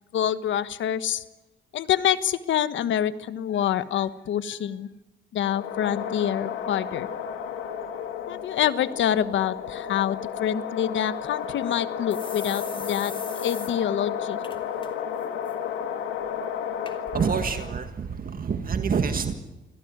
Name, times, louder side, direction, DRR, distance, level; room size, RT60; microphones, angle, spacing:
voice 1, 0.1-1.2 1.7-4.9 5.3-7.1 8.3-14.4, left 10 dB, 70° left, 13 dB, 1.3 m, -26 dB
sound 1, 5.4-17.8, left 8 dB, 85° left, 2.7 m, -33 dB
sound 2, 11.2-11.3 11.6-11.7 12.1-13.7 14.0-14.1 14.4-14.9 15.2-15.5 16.2-16.3 16.8-17.0 17.7-17.8, left 3 dB, 25° left, 3.3 m, -40 dB
voice 2, 17.1-19.3, right 6 dB, 45° right, 7 dB, 1.7 m, -26 dB
26.5 x 17.0 x 9.6 m, 1.1 s
cardioid pair, 90°, 20 cm